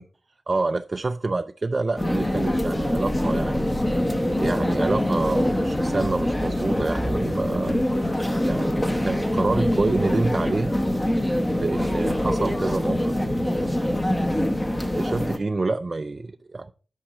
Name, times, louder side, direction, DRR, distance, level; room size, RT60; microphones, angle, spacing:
voice 1, 0.5-4.0 4.4-7.8 8.4-10.8 11.5-14.1 14.9-16.7, right 3 dB, 35° right, 0.4 m, -27 dB
sound 1, 2.0-15.4, left 1 dB, 15° left, 1.0 m, -24 dB
8.7 x 5.4 x 4.9 m
wide cardioid pair, 95°, 0 cm